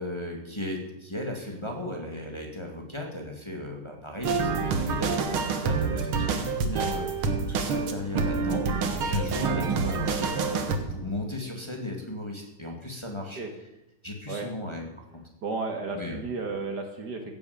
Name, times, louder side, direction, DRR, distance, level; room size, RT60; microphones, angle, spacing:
voice 1, 0.0-13.4 14.0-15.1 15.9-16.2, left 1 dB, 15° left, 0 dB, 2.4 m, -36 dB
sound 1, 4.2-10.8, right 4 dB, 80° right, 2.3 m, -27 dB
voice 2, 15.4-17.3, right 4 dB, 55° right, 5 dB, 2.1 m, -33 dB
15.5 x 8.8 x 8.4 m, 0.92 s
omnidirectional pair, 2.3 m